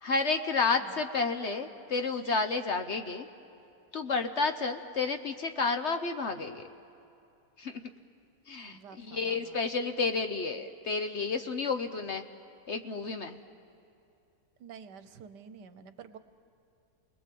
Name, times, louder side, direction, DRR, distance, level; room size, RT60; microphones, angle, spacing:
voice 1, 0.0-3.3 3.9-6.6 7.6-7.8 8.5-12.2 12.7-13.4, left 4 dB, 50° left, 7 dB, 1.0 m, -31 dB
voice 2, 8.7-9.6 14.6-16.2, right 6 dB, 80° right, 11 dB, 1.6 m, -49 dB
29.5 x 20.0 x 7.7 m, 2.7 s
omnidirectional pair, 1.8 m